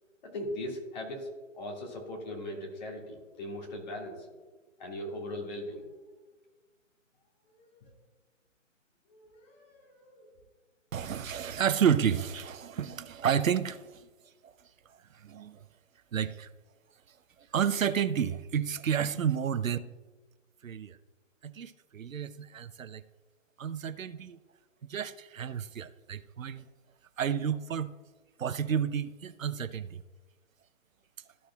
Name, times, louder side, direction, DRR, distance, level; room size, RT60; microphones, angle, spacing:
voice 1, 0.2-4.3 4.8-5.8 7.5-7.9 9.1-10.3, left 1 dB, 35° left, 1.9 m, -40 dB
voice 2, 10.9-14.0 14.4-14.5 15.1-15.6 16.1-16.5 17.5-19.9 20.6-21.0 21.4-23.0 23.6-24.4 24.9-26.6 27.2-27.9 28.4-30.0, right 8 dB, 80° right, 0.7 m, -31 dB
13.5 x 6.4 x 2.3 m
figure-of-eight pair, 150°, 39 cm